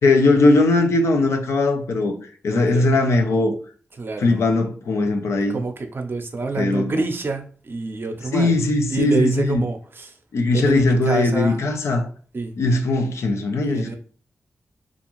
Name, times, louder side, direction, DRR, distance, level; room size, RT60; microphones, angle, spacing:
voice 1, 0.0-2.1 2.4-3.5 4.2-5.6 6.6-7.0 8.3-9.6 10.3-12.1 12.6-14.0, left 2 dB, 80° left, 0.4 m, -19 dB
voice 2, 2.5-2.9 4.0-4.4 5.5-8.6 8.9-10.1 10.5-11.6 12.3-12.5 13.7-14.0, right 3 dB, 50° right, 0.6 m, -27 dB
2.4 x 2.4 x 2.9 m
cardioid pair, 45°, 5 cm